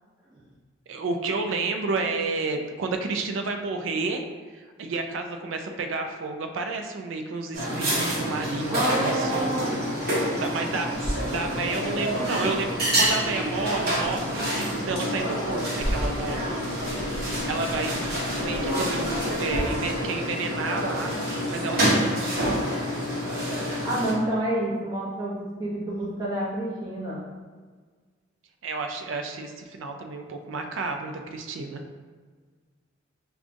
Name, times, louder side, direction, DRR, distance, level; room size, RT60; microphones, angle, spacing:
voice 1, 0.9-4.2 4.5-9.7 10.2-16.9 17.3-18.0 18.4-21.2 21.5-22.6 28.6-31.8, right 3 dB, 80° right, 4 dB, 0.4 m, -31 dB
sound 1, 7.5-24.1, equal, 50° right, 0.9 m, -27 dB
voice 2, 8.7-9.7 23.8-27.2, right 1 dB, 20° right, -9 dB, 0.7 m, -28 dB
sound 2, 10.9-19.6, equal, 25° left, 1.2 m, -37 dB
5.0 x 2.3 x 2.5 m, 1.5 s
head